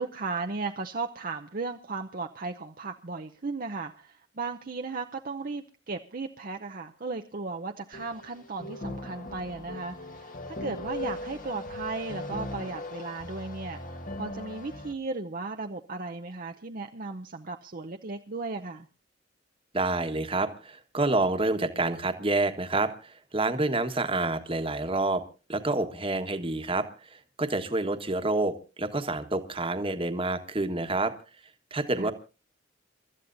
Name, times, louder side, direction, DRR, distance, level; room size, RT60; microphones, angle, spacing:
voice 1, 0.0-13.8 14.2-18.9 32.0-32.1, right 3 dB, 50° right, 0.7 m, -36 dB
sound 1, 7.9-14.9, left 1 dB, 45° left, 1.6 m, -39 dB
voice 2, 19.7-25.2 25.5-31.1 31.7-32.1, right 2 dB, 30° right, 1.4 m, -28 dB
29.5 x 13.0 x 2.6 m
head